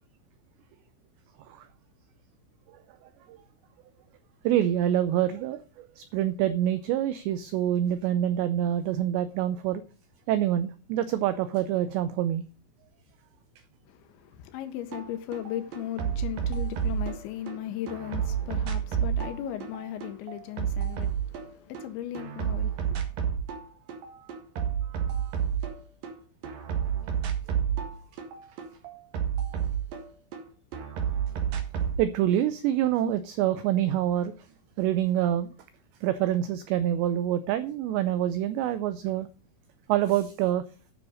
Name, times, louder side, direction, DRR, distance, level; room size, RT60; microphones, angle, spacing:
voice 1, 4.4-9.8 10.3-12.4 24.2-24.3 24.8-25.3 32.0-34.3 34.8-35.5 36.0-39.3 39.9-40.6, right 11 dB, 90° right, 2.5 m, -26 dB
voice 2, 13.9-23.0, left 12 dB, 80° left, 2.8 m, -37 dB
sound 1, 14.9-15.0 15.3-17.5 17.9-21.8 22.1-23.6 23.9-26.1 26.4-30.4 30.7-32.0, right 8 dB, 60° right, 2.5 m, -30 dB
10.0 x 6.4 x 6.2 m
omnidirectional pair, 5.8 m